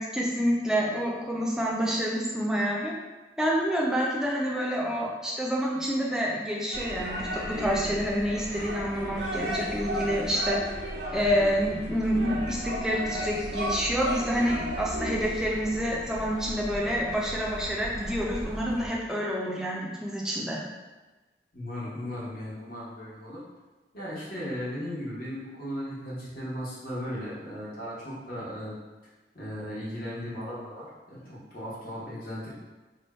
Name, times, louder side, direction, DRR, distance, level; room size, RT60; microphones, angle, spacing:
voice 1, 0.0-2.9 3.4-10.6 11.1-20.6, equal, 5° right, -4 dB, 0.5 m, -28 dB
sound 1, 6.7-18.9, equal, 90° right, 0.8 m, -35 dB
voice 2, 21.5-23.4 23.9-28.7 29.3-32.5, equal, 55° left, -8 dB, 1.2 m, -36 dB
3.0 x 2.3 x 4.2 m, 1.2 s
head